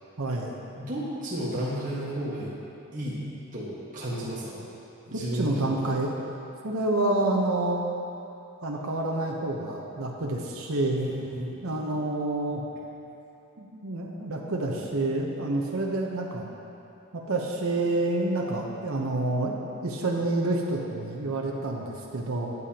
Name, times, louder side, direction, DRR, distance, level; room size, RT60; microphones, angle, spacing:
voice 1, 0.2-0.5 5.1-6.2 6.6-7.8 8.6-11.1 11.6-12.6 13.6-16.5 17.1-19.6 19.8-22.5, right 2 dB, 75° right, -1 dB, 1.0 m, -28 dB
voice 2, 0.8-2.5 2.9-3.2 3.5-4.6 5.1-5.9 10.9-11.6, equal, 35° right, -8 dB, 1.5 m, -33 dB
13.5 x 9.5 x 2.9 m, 2.8 s
head